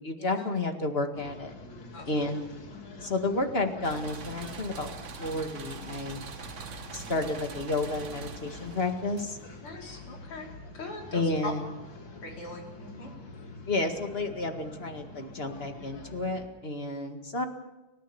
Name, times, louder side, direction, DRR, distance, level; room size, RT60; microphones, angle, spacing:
voice 1, 0.0-1.5 2.1-2.5 3.0-4.9 5.2-6.2 6.9-9.4 11.1-11.7 13.7-17.4, left 2 dB, 30° left, 5 dB, 2.0 m, -31 dB
sound 1, 1.1-16.5, left 2 dB, 60° left, 2.9 m, -46 dB
sound 2, 3.8-9.7, right 5 dB, 45° right, 1.1 m, -43 dB
voice 2, 6.6-7.2 9.6-10.5 10.7-11.5 12.2-13.1, left 2 dB, 75° left, 0 dB, 5.0 m, -41 dB
29.5 x 14.5 x 7.1 m, 1.0 s
omnidirectional pair, 2.4 m